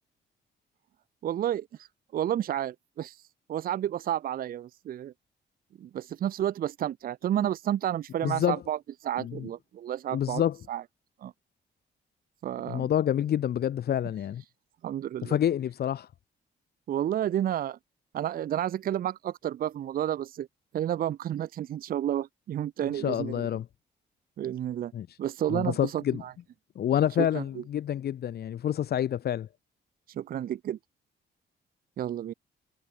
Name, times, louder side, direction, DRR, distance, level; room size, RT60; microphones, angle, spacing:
voice 1, 1.2-1.7 2.1-3.2 3.5-5.1 5.8-10.4 10.7-10.8 11.2-11.3 12.4-12.9 14.8-15.4 16.9-17.8 18.1-20.5 20.7-23.5 24.4-24.9 25.2-26.3 27.2-27.6 30.1-30.8 32.0-32.3, right 11 dB, 50° right, 0.5 m, -31 dB
voice 2, 8.2-8.6 9.2-9.5 10.1-10.6 12.7-14.4 15.2-16.1 22.9-23.7 24.9-25.2 25.5-26.2 26.8-29.5, left 10 dB, 60° left, 1.0 m, -28 dB
cardioid pair, 115°, 19 cm